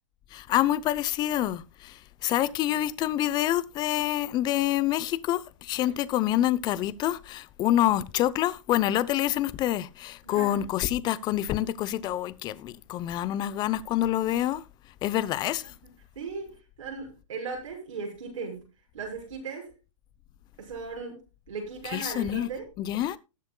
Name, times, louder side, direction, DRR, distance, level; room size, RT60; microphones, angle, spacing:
voice 1, 0.3-14.6 15.0-15.6 21.9-22.5 22.8-23.2, left 13 dB, 25° left, 0.7 m, -27 dB
voice 2, 10.2-10.6 15.6-18.7 18.9-19.7 20.6-21.2 21.5-22.7, right 4 dB, 75° right, 6.4 m, -38 dB
19.5 x 7.9 x 2.3 m
hypercardioid pair, 130°, 17 cm